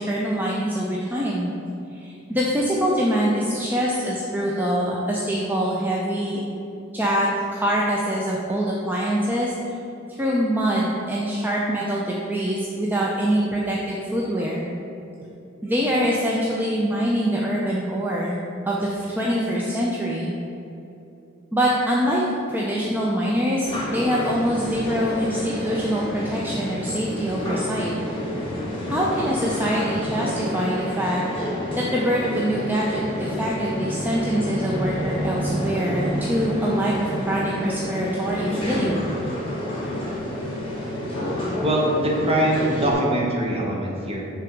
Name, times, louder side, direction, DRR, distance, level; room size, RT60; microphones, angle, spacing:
voice 1, 0.0-1.5 1.9-6.4 6.9-9.5 10.1-14.7 15.6-18.4 18.6-20.3 21.5-22.2 22.5-27.9 28.9-31.2 31.8-39.1, equal, 10° right, -4 dB, 0.4 m, -24 dB
sound 1, 23.6-42.9, equal, 25° left, 1.4 m, -29 dB
voice 2, 41.6-44.3, right 1 dB, 30° right, -2 dB, 0.9 m, -22 dB
6.0 x 3.4 x 5.0 m, 2.8 s
head